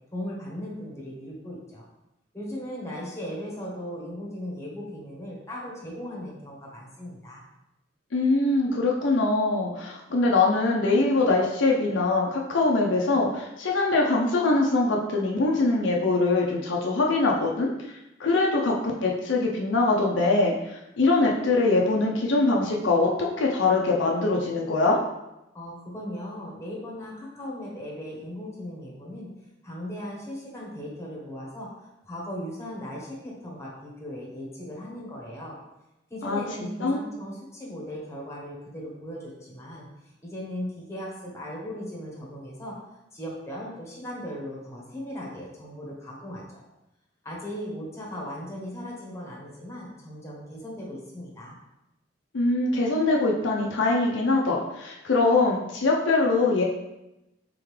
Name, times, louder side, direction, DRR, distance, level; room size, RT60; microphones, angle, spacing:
voice 1, 0.1-1.8 2.3-7.4 25.5-29.3 29.6-31.7 32.0-35.6 36.1-39.9 40.2-42.8 43.1-46.4 47.2-51.6, equal, 15° left, -3 dB, 1.1 m, -37 dB
voice 2, 8.1-25.0 36.2-36.4 36.8-37.0 52.3-56.6, left 3 dB, 70° left, -1 dB, 0.6 m, -23 dB
3.8 x 3.6 x 3.2 m, 0.92 s
head